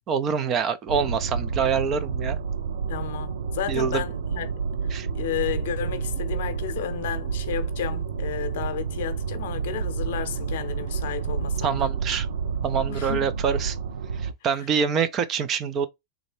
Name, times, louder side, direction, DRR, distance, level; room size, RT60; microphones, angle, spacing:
voice 1, 0.1-2.4 3.7-4.0 4.9-5.1 11.6-12.3 12.6-13.8 14.2-15.9, right 6 dB, 35° right, 0.5 m, -25 dB
sound 1, 0.9-14.3, right 6 dB, 85° right, 0.5 m, -29 dB
voice 2, 2.9-4.5 5.1-11.9 12.9-13.3, left 10 dB, 70° left, 0.7 m, -32 dB
3.6 x 2.2 x 3.2 m
hypercardioid pair, 110°, 0 cm